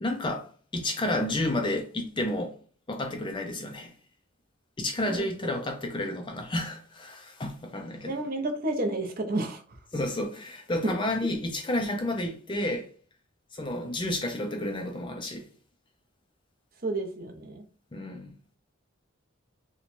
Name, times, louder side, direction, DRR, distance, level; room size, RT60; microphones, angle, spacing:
voice 1, 0.0-2.6 2.9-3.9 4.8-8.2 9.9-12.9 13.5-15.5 17.9-18.3, left 1 dB, 25° left, 0.4 m, -31 dB
voice 2, 8.1-9.6 16.8-17.6, right 2 dB, 45° right, 0.6 m, -31 dB
2.9 x 2.1 x 4.1 m
head